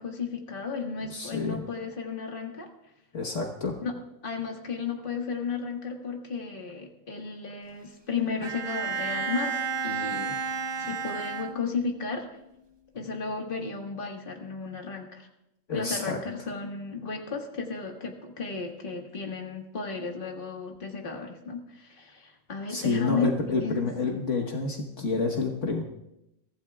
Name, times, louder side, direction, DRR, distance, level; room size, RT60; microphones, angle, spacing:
voice 1, 0.0-2.7 3.8-3.9 4.2-9.6 9.8-10.4 10.8-12.3 12.9-15.3 15.7-23.3 23.6-24.2, left 5 dB, 40° left, 1 dB, 1.8 m, -34 dB
voice 2, 1.1-1.6 3.1-3.7 15.7-16.2 22.7-25.8, left 3 dB, 65° left, 1 dB, 1.6 m, -29 dB
Bowed string instrument, 8.4-12.1, right 5 dB, 30° right, 0.5 m, -32 dB
23.5 x 15.5 x 2.4 m, 0.86 s
omnidirectional pair, 1.4 m